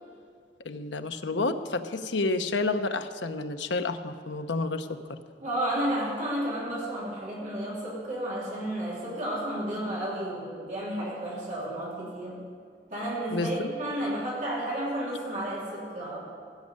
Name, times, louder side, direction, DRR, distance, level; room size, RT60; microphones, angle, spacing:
voice 1, 0.6-4.9 13.3-13.7, left 3 dB, 75° left, 8 dB, 0.7 m, -30 dB
voice 2, 5.4-12.4 12.9-16.2, right 1 dB, 40° right, -6 dB, 3.1 m, -32 dB
16.5 x 6.4 x 9.6 m, 2.1 s
head